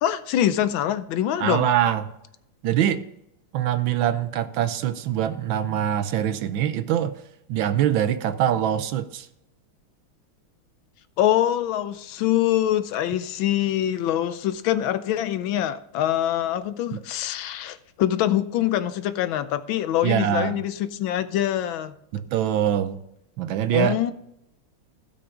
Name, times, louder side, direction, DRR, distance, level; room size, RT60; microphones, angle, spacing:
voice 1, 0.0-1.7 11.2-21.9 23.7-24.1, left 12 dB, 75° left, 12 dB, 1.3 m, -24 dB
voice 2, 1.4-2.0 2.6-3.0 3.5-7.1 7.5-9.3 16.9-17.0 20.0-20.6 22.1-23.0 23.4-24.0, right 10 dB, 75° right, 11 dB, 1.4 m, -23 dB
16.0 x 5.9 x 3.8 m, 0.79 s
omnidirectional pair, 2.3 m